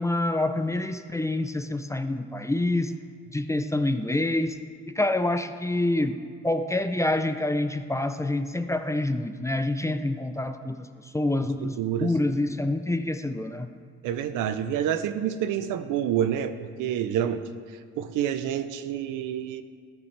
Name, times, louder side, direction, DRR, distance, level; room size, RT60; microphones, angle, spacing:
voice 1, 0.0-2.9 3.3-4.6 4.9-6.2 6.4-11.8 12.0-13.7, left 2 dB, 10° left, 8 dB, 0.4 m, -27 dB
voice 2, 11.6-12.1 14.0-17.4 18.0-19.6, right 10 dB, 90° right, 10 dB, 0.6 m, -28 dB
13.0 x 7.0 x 3.3 m, 2.2 s
cardioid pair, 90°, 30 cm